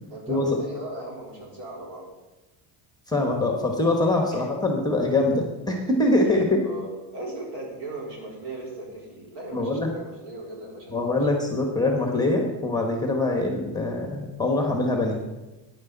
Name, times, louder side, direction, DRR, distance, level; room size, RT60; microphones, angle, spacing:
voice 1, 0.1-2.1 4.3-4.7 6.6-11.1, right 1 dB, 55° right, -2 dB, 4.5 m, -38 dB
voice 2, 3.1-6.6 9.5-9.9 10.9-15.2, left 2 dB, 10° left, 1 dB, 1.5 m, -23 dB
14.0 x 10.5 x 4.1 m, 1.1 s
cardioid pair, 140°, 48 cm